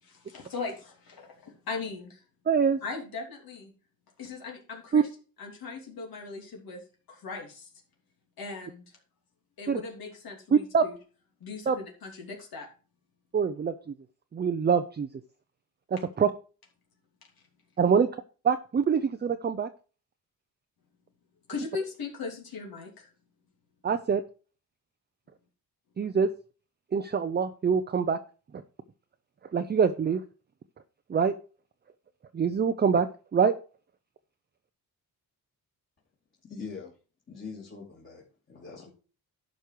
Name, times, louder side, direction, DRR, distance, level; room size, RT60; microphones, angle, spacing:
voice 1, 0.0-2.2 2.8-3.7 4.2-5.1 5.4-7.7 8.4-8.8 9.6-11.0 11.4-12.7 21.5-23.1, left 4 dB, 70° left, 1 dB, 2.9 m, -39 dB
voice 2, 2.5-2.8 4.9-5.0 9.7-9.8 10.5-10.8 11.7-11.8 13.3-13.7 14.3-15.1 16.2-16.3 17.8-18.1 18.4-19.7 23.8-24.2 26.0-26.3 26.9-28.2 29.5-30.2 31.1-31.3 32.3-33.1 33.3-33.5, right 6 dB, 25° right, 8 dB, 0.6 m, -24 dB
voice 3, 36.4-36.9 37.3-38.9, left 5 dB, 30° left, -4 dB, 2.9 m, -42 dB
11.5 x 5.4 x 4.6 m, 0.36 s
cardioid pair, 120°, 37 cm